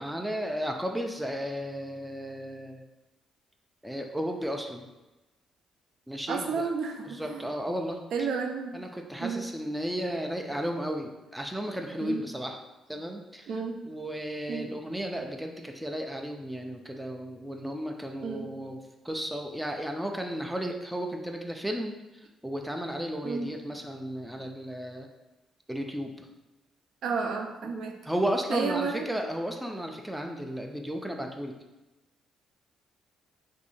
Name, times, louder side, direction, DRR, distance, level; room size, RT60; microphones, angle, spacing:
voice 1, 0.0-2.8 3.8-4.9 6.1-6.7 7.1-8.3 8.7-12.6 12.9-18.8 19.0-25.1 25.7-26.3 28.0-31.5, equal, 5° right, 2 dB, 0.4 m, -34 dB
voice 2, 6.3-7.4 8.1-8.8 9.2-9.4 12.0-12.2 13.5-13.8 14.5-14.7 18.2-18.5 23.2-23.5 27.0-27.9 28.5-29.1, right 5 dB, 70° right, 3 dB, 0.5 m, -31 dB
2.7 x 2.7 x 4.2 m, 1.1 s
cardioid pair, 90°, 0 cm